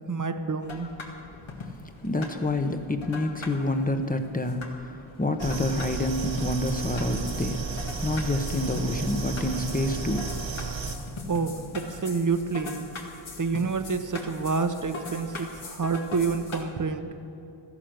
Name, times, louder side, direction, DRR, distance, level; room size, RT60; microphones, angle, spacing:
voice 1, 0.1-0.9 11.3-12.9 13.4-17.1, right 4 dB, 40° right, 9 dB, 0.9 m, -28 dB
sound 1, 0.6-16.6, left 3 dB, 70° left, 2.0 m, -42 dB
voice 2, 2.0-7.6 8.0-10.3, left 2 dB, 15° left, 7 dB, 1.0 m, -28 dB
sound 2, 5.4-11.0, right 4 dB, 65° right, 1.6 m, -33 dB
14.0 x 11.0 x 6.4 m, 2.8 s
wide cardioid pair, 80°, 48 cm